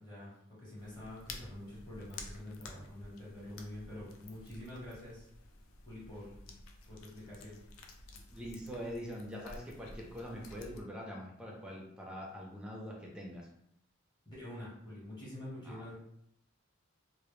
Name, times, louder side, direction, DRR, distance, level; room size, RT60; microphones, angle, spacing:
voice 1, 0.0-5.3 5.8-6.3 6.9-7.6 14.2-15.9, left 1 dB, 20° left, -7 dB, 0.9 m, -46 dB
sound 1, 0.8-10.8, left 3 dB, 70° left, 0.3 m, -52 dB
voice 2, 8.3-13.5 15.6-15.8, equal, 5° right, -2 dB, 0.4 m, -44 dB
2.1 x 2.0 x 3.0 m, 0.74 s
head